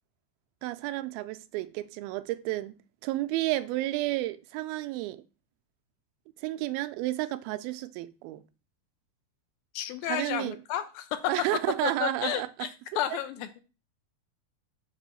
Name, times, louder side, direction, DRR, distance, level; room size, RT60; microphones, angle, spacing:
voice 1, 0.6-5.2 6.4-8.4 10.1-10.6 11.3-12.7, right 16 dB, 85° right, 2.4 m, -31 dB
voice 2, 9.7-11.3 11.8-12.7 13.0-13.6, left 11 dB, 80° left, 2.2 m, -32 dB
7.5 x 3.1 x 5.5 m
omnidirectional pair, 4.2 m